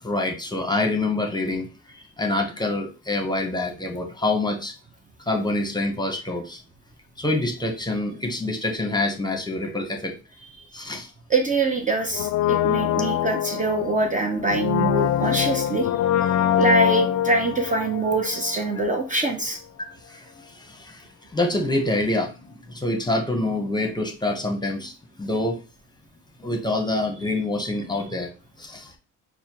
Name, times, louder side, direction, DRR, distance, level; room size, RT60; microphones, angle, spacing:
voice 1, 0.0-4.7 5.2-6.6 7.2-10.1 10.7-11.1 19.8-21.0 21.3-24.9 25.2-25.6 26.4-28.3 28.6-28.9, left 2 dB, 15° left, 3 dB, 0.9 m, -26 dB
voice 2, 11.3-15.9 16.6-19.6, right 3 dB, 25° right, 4 dB, 0.6 m, -24 dB
Brass instrument, 12.1-19.0 19.2-19.3, left 11 dB, 65° left, 0.4 m, -24 dB
6.3 x 2.2 x 2.9 m, 0.33 s
cardioid pair, 90°, 30 cm